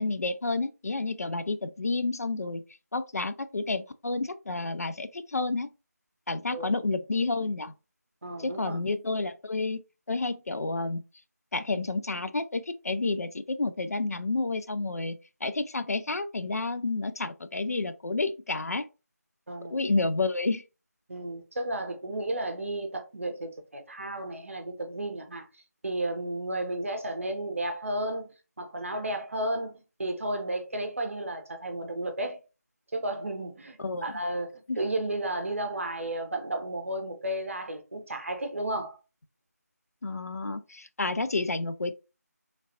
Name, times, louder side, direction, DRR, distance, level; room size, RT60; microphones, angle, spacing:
voice 1, 0.0-2.6 2.9-5.7 6.3-7.7 8.4-9.8 10.1-11.0 11.5-18.9 19.7-20.6 33.8-34.1 34.7-34.8 40.0-41.9, left 3 dB, 65° left, 0.4 m, -30 dB
voice 2, 8.2-8.8 19.5-19.7 21.1-32.4 32.9-39.0, right 1 dB, 50° right, 0.8 m, -33 dB
3.2 x 2.4 x 2.6 m
figure-of-eight pair, 165°, 9 cm